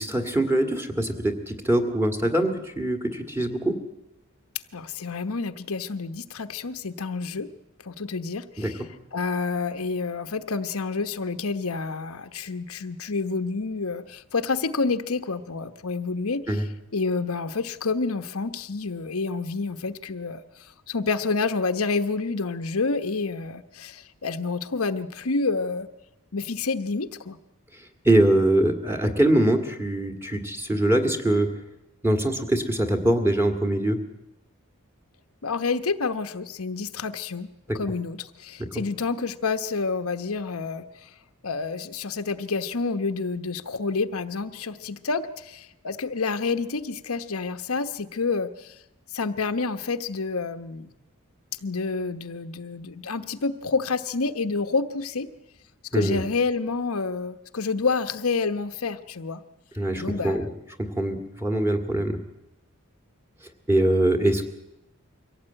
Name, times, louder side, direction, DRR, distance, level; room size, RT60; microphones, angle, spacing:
voice 1, 0.0-3.7 8.6-8.7 16.5-16.6 28.0-31.5 32.0-34.0 38.7-38.8 55.9-56.2 59.8-60.5 61.0-62.2 63.7-64.5, right 1 dB, 10° right, 5 dB, 1.9 m, -23 dB
voice 2, 4.7-7.5 7.8-8.8 9.1-16.6 16.9-25.9 26.3-27.4 35.4-41.1 41.4-48.7 49.1-50.9 51.6-55.3 55.9-59.4 59.9-60.5, left 4 dB, 85° left, 9 dB, 1.0 m, -28 dB
23.5 x 17.0 x 8.9 m, 0.90 s
head